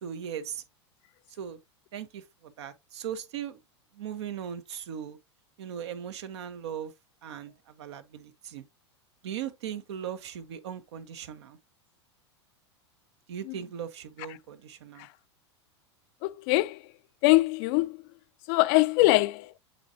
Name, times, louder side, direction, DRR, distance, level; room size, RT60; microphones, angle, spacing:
voice 1, 0.0-0.6 1.3-1.6 1.9-3.6 3.9-5.2 5.6-6.9 7.2-8.6 9.2-11.6 13.3-15.1 19.0-19.2, right 9 dB, 70° right, 1.1 m, -38 dB
voice 2, 16.2-16.8 17.2-17.9 18.5-19.4, left 20 dB, 50° left, 0.4 m, -22 dB
7.9 x 4.5 x 2.7 m
hypercardioid pair, 100°, 15 cm